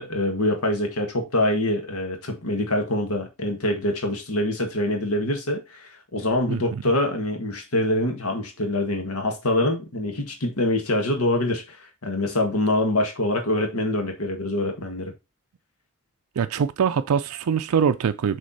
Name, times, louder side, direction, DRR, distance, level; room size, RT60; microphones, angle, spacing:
voice 1, 0.0-15.1, left 1 dB, 85° left, 1.7 m, -25 dB
voice 2, 16.4-18.4, right 7 dB, 85° right, 0.4 m, -23 dB
6.4 x 3.6 x 4.1 m
head